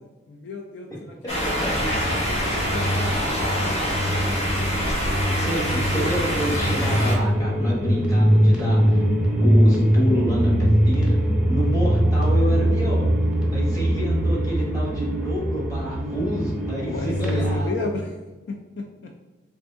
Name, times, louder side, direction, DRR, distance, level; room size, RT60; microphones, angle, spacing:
voice 1, 0.3-2.0 2.3-4.0 16.8-18.1 18.5-19.3, left 2 dB, 65° left, 3 dB, 0.3 m, -34 dB
voice 2, 1.2-1.7 5.4-9.0 9.4-11.1 11.5-12.9 13.5-17.7, equal, 15° left, -5 dB, 1.0 m, -28 dB
sound 1, 1.3-7.2, equal, 35° left, 0.7 m, -25 dB
sound 2, 1.6-17.6, equal, 5° right, 0.5 m, -22 dB
3.5 x 2.6 x 3.4 m, 1.2 s
head